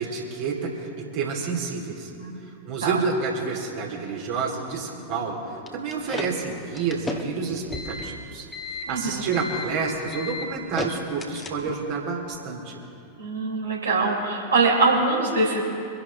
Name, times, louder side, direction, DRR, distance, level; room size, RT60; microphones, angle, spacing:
voice 1, 0.0-2.1 2.7-12.8, right 5 dB, 50° right, -2 dB, 2.6 m, -29 dB
sound 1, 5.7-11.9, left 3 dB, 15° left, 1.5 m, -34 dB
voice 2, 8.9-9.2 13.2-15.6, right 3 dB, 75° right, -3 dB, 3.7 m, -23 dB
24.5 x 11.0 x 3.5 m, 2.7 s
figure-of-eight pair, 90°, 0 cm